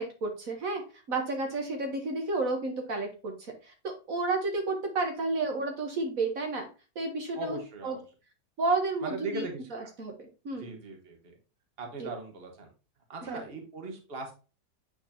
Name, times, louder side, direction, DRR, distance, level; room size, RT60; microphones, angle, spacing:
voice 1, 0.0-6.7 6.9-8.0 8.6-9.5 9.7-10.7 12.0-12.1 13.2-13.4, right 3 dB, 55° right, 3 dB, 1.3 m, -31 dB
voice 2, 7.3-8.0 9.0-9.6 10.5-11.3 11.8-12.7 13.1-14.3, right 3 dB, 35° right, 2 dB, 1.4 m, -39 dB
8.6 x 4.4 x 2.8 m, 0.33 s
omnidirectional pair, 2.0 m